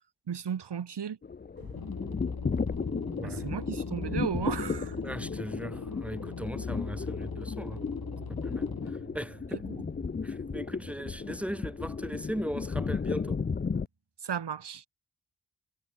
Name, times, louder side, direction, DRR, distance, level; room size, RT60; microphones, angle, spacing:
voice 1, 0.3-1.2 3.2-5.0 9.7-9.8 14.2-14.9, right 8 dB, 80° right, 0.9 m, -35 dB
sound 1, 1.2-13.9, left 5 dB, 25° left, 0.4 m, -34 dB
sound 2, 1.6-13.8, right 3 dB, 60° right, 6.8 m, -51 dB
sound 3, 1.7-8.9, left 5 dB, 65° left, 1.6 m, -40 dB
voice 2, 3.1-3.5 5.0-7.8 8.4-8.7 9.1-9.6 10.2-13.4, equal, 5° right, 3.6 m, -38 dB
wide cardioid pair, 45°, 40 cm